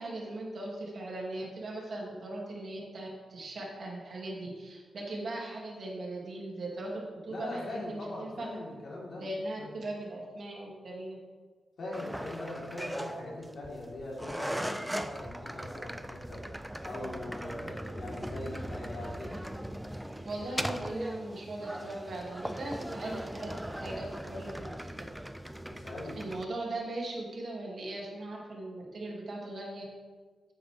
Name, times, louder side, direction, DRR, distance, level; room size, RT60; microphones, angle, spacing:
voice 1, 0.0-8.5 9.2-11.2 20.2-25.0 26.1-29.8, right 2 dB, 50° right, -2 dB, 2.5 m, -39 dB
voice 2, 7.3-9.2 9.6-9.7 11.8-16.4 16.8-19.4 25.7-26.2, left 1 dB, 50° left, -5 dB, 3.7 m, -41 dB
sound 1, 11.9-26.4, equal, 5° right, 0.4 m, -39 dB
14.0 x 9.3 x 3.5 m, 1.4 s
wide cardioid pair, 175°, 0 cm